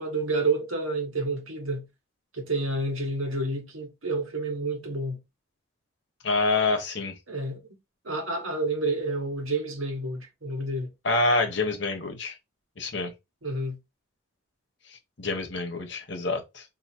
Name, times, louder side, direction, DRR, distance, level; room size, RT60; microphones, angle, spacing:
voice 1, 0.0-1.9 2.3-5.2 7.3-7.6 8.0-10.9 13.4-13.8, right 2 dB, 80° right, 1.2 m, -29 dB
voice 2, 6.2-7.1 11.0-12.4 12.8-13.1 15.2-16.6, left 3 dB, 55° left, 1.0 m, -26 dB
2.8 x 2.7 x 4.3 m
head